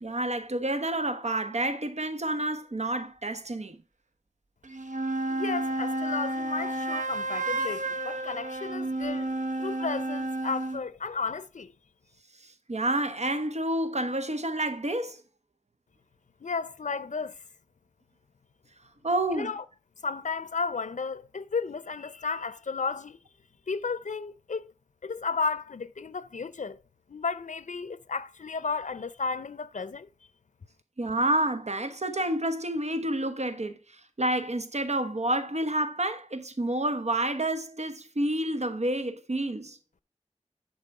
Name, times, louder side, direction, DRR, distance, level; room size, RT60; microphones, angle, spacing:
voice 1, 0.0-3.8 12.4-15.2 19.0-19.5 31.0-39.8, right 1 dB, 65° right, 1.2 m, -29 dB
sound 1, 4.6-10.8, right 2 dB, 85° right, 1.0 m, -31 dB
voice 2, 5.3-9.3 9.6-11.7 16.4-17.3 19.3-19.6 20.0-23.2 23.7-24.7 25.0-26.8 27.1-30.1, left 4 dB, 90° left, 0.5 m, -33 dB
10.5 x 4.2 x 4.8 m
wide cardioid pair, 55°, 12 cm